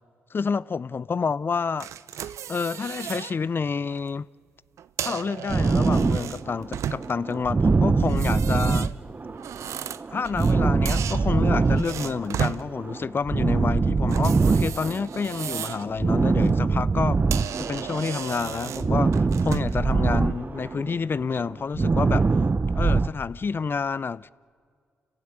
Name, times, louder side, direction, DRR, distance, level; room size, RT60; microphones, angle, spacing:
voice 1, 0.3-1.9 2.1-4.3 5.0-8.9 10.1-17.2 17.6-22.3 22.7-24.3, left 5 dB, 45° left, 0.5 m, -29 dB
sound 1, 1.8-3.3 3.8-4.0 4.8-7.3 8.0-10.6 10.9-12.6 14.1-15.9 16.3-16.5 17.0-17.1 17.3-19.8, right 9 dB, 75° right, 0.6 m, -35 dB
sound 2, 5.5-18.1 18.4-23.1, right 4 dB, 35° right, 0.7 m, -23 dB
29.5 x 15.5 x 9.1 m
supercardioid pair, 45°, 5 cm